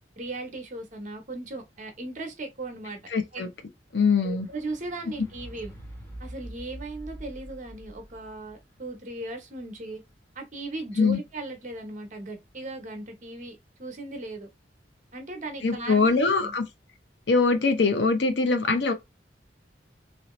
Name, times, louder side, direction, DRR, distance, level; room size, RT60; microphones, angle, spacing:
voice 1, 0.2-3.0 3.3-3.5 4.2-5.7 6.2-10.0 10.3-14.5 15.1-16.5, right 2 dB, 45° right, 0.9 m, -37 dB
voice 2, 3.1-3.5 3.9-4.5 11.0-11.2 15.6-16.6 17.3-18.9, left 4 dB, 75° left, 0.7 m, -22 dB
sound 1, 4.2-10.7 11.5-11.6, right 1 dB, 10° left, 1.0 m, -45 dB
3.1 x 2.8 x 3.0 m
head